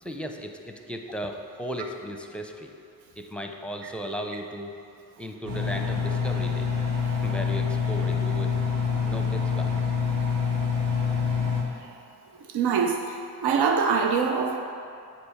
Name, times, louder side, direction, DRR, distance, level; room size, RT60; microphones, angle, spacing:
voice 1, 0.0-2.7 3.2-4.7 5.2-6.7 7.2-8.5 9.0-9.8, equal, 5° left, 4 dB, 0.6 m, -36 dB
Engine, 5.4-11.6, left 6 dB, 55° right, 1.5 m, -26 dB
voice 2, 12.5-14.6, right 6 dB, 75° right, 4 dB, 0.6 m, -24 dB
7.8 x 3.1 x 5.6 m, 2.5 s
supercardioid pair, 50°, 40 cm